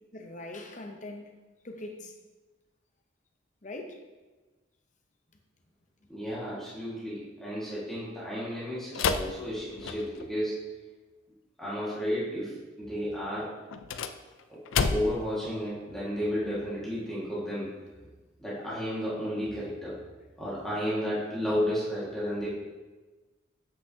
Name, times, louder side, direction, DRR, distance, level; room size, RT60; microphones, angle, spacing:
voice 1, 0.1-1.3 1.6-2.1 3.6-4.0, left 2 dB, 40° left, 3 dB, 0.7 m, -41 dB
voice 2, 6.1-10.6 11.6-13.5 14.5-14.6 14.9-17.8 18.4-20.0 20.4-22.5, equal, ahead, -10 dB, 1.8 m, -32 dB
sound 1, 8.9-10.3 13.7-15.3, left 5 dB, 80° left, 0.4 m, -30 dB
7.6 x 6.1 x 2.8 m, 1.2 s
head